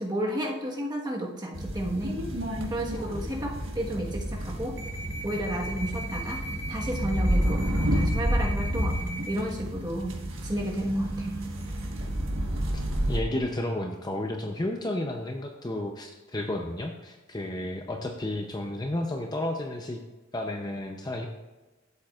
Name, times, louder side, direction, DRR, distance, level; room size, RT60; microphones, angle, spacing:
voice 1, 0.0-2.2 2.7-4.8 5.2-6.4 6.7-11.4, equal, 20° right, -1 dB, 1.3 m, -32 dB
sound 1, 1.5-13.2, right 1 dB, 60° right, 1.4 m, -30 dB
voice 2, 13.1-20.0 20.3-21.3, left 1 dB, 20° left, 3 dB, 0.6 m, -32 dB
13.0 x 7.7 x 2.4 m, 1.2 s
head